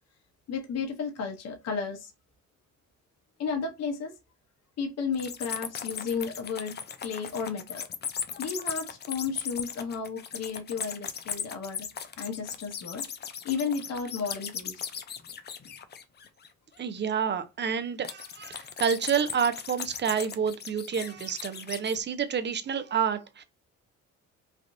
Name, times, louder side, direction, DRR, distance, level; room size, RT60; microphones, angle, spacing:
voice 1, 0.5-2.1 3.4-4.1 4.8-6.8 7.0-7.9 8.4-11.9 12.2-13.0 13.4-14.9, left 5 dB, 60° left, 0.8 m, -33 dB
sound 1, 5.1-16.5 18.0-22.0, left 7 dB, 35° left, 0.4 m, -37 dB
voice 2, 16.8-23.4, right 7 dB, 35° right, 0.6 m, -29 dB
3.4 x 2.4 x 2.5 m
cardioid pair, 90°, 30 cm